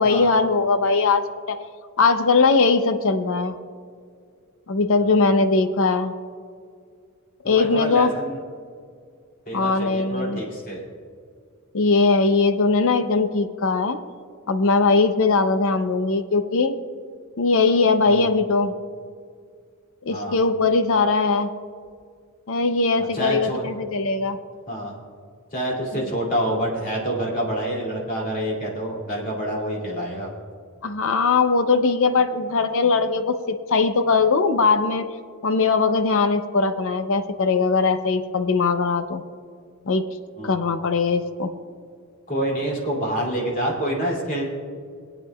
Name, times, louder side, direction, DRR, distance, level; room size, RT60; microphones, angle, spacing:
voice 1, 0.0-1.6 2.0-3.6 4.7-6.1 7.4-8.1 9.5-10.4 11.7-14.0 14.5-16.8 17.4-18.7 20.0-21.5 22.5-24.4 25.9-26.1 30.8-35.1 35.4-39.2 39.9-40.0 40.4-41.5, left 4 dB, 65° left, 9 dB, 0.6 m, -20 dB
voice 2, 7.4-8.4 9.5-10.8 18.1-18.3 20.1-20.4 23.1-23.6 24.7-24.9 25.5-30.3 40.4-40.6 42.3-44.4, right 1 dB, 40° left, -2 dB, 2.6 m, -27 dB
25.0 x 8.8 x 2.3 m, 2.1 s
head